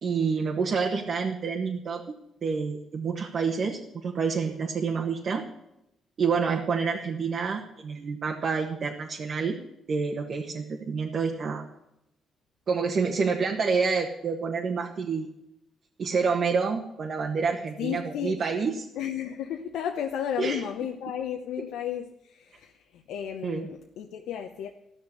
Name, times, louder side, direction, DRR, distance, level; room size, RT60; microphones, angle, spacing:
voice 1, 0.0-2.0 2.4-5.4 6.2-9.6 9.9-11.6 12.7-15.3 16.0-18.8 20.4-20.6 23.4-23.6, right 5 dB, 55° right, 1.5 m, -28 dB
voice 2, 17.8-18.4 18.9-24.7, left 9 dB, 85° left, 0.9 m, -33 dB
14.5 x 6.3 x 10.0 m
cardioid pair, 90°, 0 cm